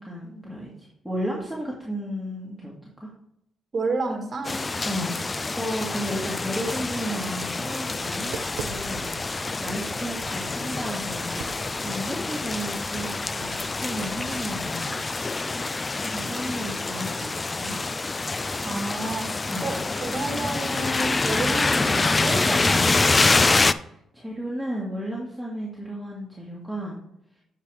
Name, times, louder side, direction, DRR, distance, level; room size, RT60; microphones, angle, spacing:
voice 1, 0.0-3.1 4.8-17.8 19.5-19.7 23.8-27.0 27.4-27.5, equal, 5° left, -4 dB, 1.8 m, -34 dB
voice 2, 3.7-4.6 18.6-23.2, right 2 dB, 40° right, 4 dB, 1.4 m, -31 dB
sound 1, 4.4-23.7, left 3 dB, 25° left, 0.3 m, -26 dB
Tap, 7.9-14.6, right 7 dB, 80° right, 0.6 m, -43 dB
9.7 x 5.1 x 3.3 m, 0.78 s
cardioid pair, 90°, 0 cm